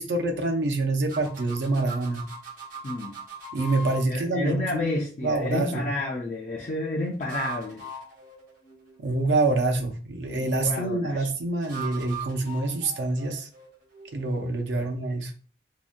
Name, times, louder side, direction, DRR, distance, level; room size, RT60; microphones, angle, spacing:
voice 1, 0.0-2.2 3.5-4.8 5.2-5.9 9.0-13.5 14.1-15.3, right 2 dB, 80° right, 3 dB, 0.5 m, -26 dB
sound 1, 1.1-4.0 7.1-9.2 11.6-14.5, right 3 dB, 45° right, 0.7 m, -40 dB
voice 2, 4.1-7.8 10.4-11.3 14.8-14.9, left 2 dB, 40° left, -1 dB, 0.3 m, -30 dB
2.7 x 2.1 x 2.4 m, 0.41 s
head